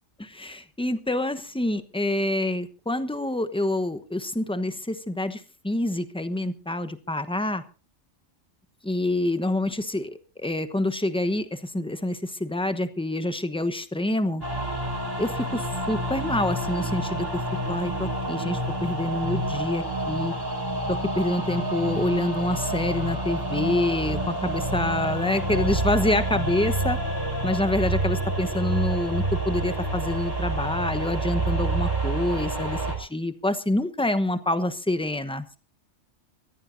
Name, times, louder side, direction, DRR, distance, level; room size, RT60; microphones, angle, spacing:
voice 1, 0.2-7.6 8.8-10.1 10.4-14.4 15.2-17.4 17.7-20.3 20.9-27.0 27.4-35.6, left 1 dB, 5° left, 10 dB, 1.0 m, -27 dB
sound 1, 14.4-33.0, right 1 dB, 20° right, 4.8 m, -28 dB
23.5 x 15.5 x 2.7 m, 0.34 s
omnidirectional pair, 1.2 m